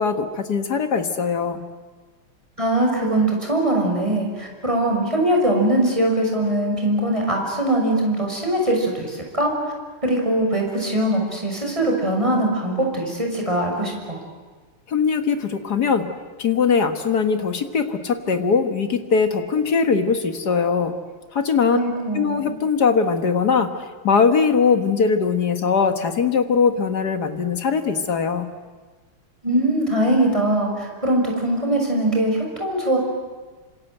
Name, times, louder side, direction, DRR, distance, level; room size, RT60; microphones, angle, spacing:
voice 1, 0.0-1.6 14.9-16.1 16.4-21.0 21.3-21.8 22.1-23.7 24.0-28.5, left 5 dB, 50° left, 7 dB, 1.9 m, -20 dB
voice 2, 2.6-9.5 10.0-14.2 21.7-22.4 29.4-33.0, right 1 dB, 15° right, 0 dB, 6.1 m, -21 dB
27.0 x 26.0 x 8.0 m, 1.3 s
omnidirectional pair, 2.4 m